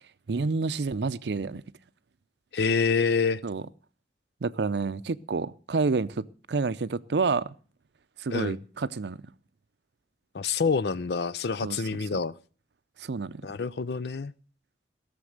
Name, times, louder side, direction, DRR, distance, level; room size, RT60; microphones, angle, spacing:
voice 1, 0.3-1.6 3.4-3.6 4.4-7.5 8.2-9.2 11.6-11.8 12.1-12.2 13.0-13.5, right 4 dB, 75° right, 0.5 m, -29 dB
voice 2, 2.5-3.4 8.3-8.6 10.3-12.3 13.4-14.3, left 5 dB, 65° left, 0.5 m, -27 dB
17.0 x 7.0 x 6.4 m
head